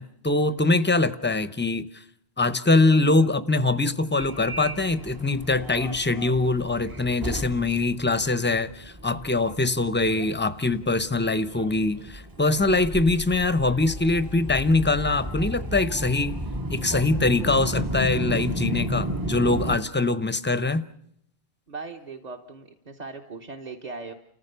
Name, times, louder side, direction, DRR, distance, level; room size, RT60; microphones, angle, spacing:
voice 1, 0.0-1.9 2.4-16.4 16.7-20.8, left 2 dB, 10° left, 13 dB, 0.7 m, -23 dB
Subway metro underground, 4.2-19.8, right 1 dB, 25° right, 0.8 m, -33 dB
voice 2, 21.7-24.1, right 4 dB, 40° right, 2 dB, 1.3 m, -39 dB
29.5 x 15.0 x 6.8 m, 0.73 s
omnidirectional pair, 1.0 m